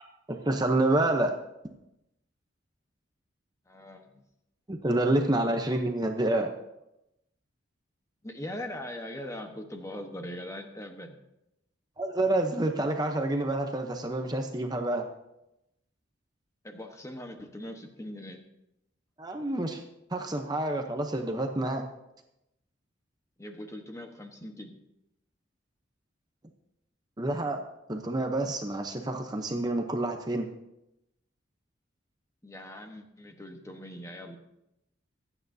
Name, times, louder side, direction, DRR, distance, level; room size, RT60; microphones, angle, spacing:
voice 1, 0.3-1.3 4.7-6.5 12.0-15.0 19.2-19.8 20.1-21.8 27.2-27.6 27.9-30.5, right 1 dB, 20° right, 4 dB, 0.8 m, -28 dB
voice 2, 3.7-4.2 8.2-11.2 16.6-18.5 23.4-24.8 32.4-34.4, left 1 dB, 15° left, 4 dB, 1.2 m, -41 dB
25.5 x 9.1 x 2.8 m, 0.87 s
head